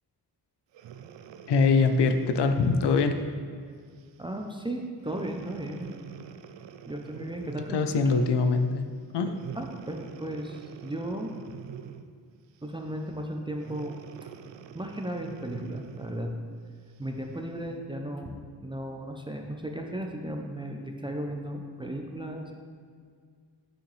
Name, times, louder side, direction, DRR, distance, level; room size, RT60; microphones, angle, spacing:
Breathing, 0.7-3.4 4.0-4.2 5.0-7.9 9.3-12.2 13.6-16.3 17.0-17.1, right 8 dB, 85° right, 0.5 m, -45 dB
voice 1, 1.5-3.2 7.7-8.9 9.1-9.3, left 4 dB, 75° left, 8 dB, 0.6 m, -23 dB
voice 2, 4.2-6.0 6.9-8.0 9.3-11.3 12.6-14.0 14.7-16.4 17.0-22.5, right 1 dB, 10° right, 2 dB, 0.4 m, -35 dB
8.4 x 6.5 x 3.2 m, 2.1 s
wide cardioid pair, 155°, 42 cm